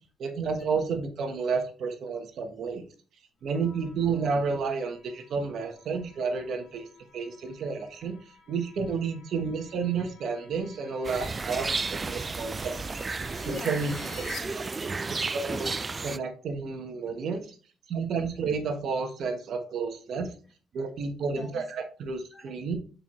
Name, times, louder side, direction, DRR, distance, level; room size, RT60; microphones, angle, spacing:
voice 1, 0.2-2.8 3.4-6.9 7.1-8.2 8.5-12.8 13.5-14.2 15.3-15.7 16.0-17.5 17.9-20.3 20.7-22.8, right 5 dB, 65° right, 6 dB, 1.1 m, -31 dB
sound 1, 3.4-14.4, left 5 dB, 70° left, 1.9 m, -52 dB
sound 2, 11.0-16.2, right 4 dB, 30° right, 0.3 m, -33 dB
voice 2, 13.4-15.3 20.8-20.9 21.2-21.7 22.3-22.5, left 2 dB, 15° left, 3 dB, 1.8 m, -44 dB
6.7 x 4.5 x 3.1 m, 0.38 s
cardioid pair, 90°, 0 cm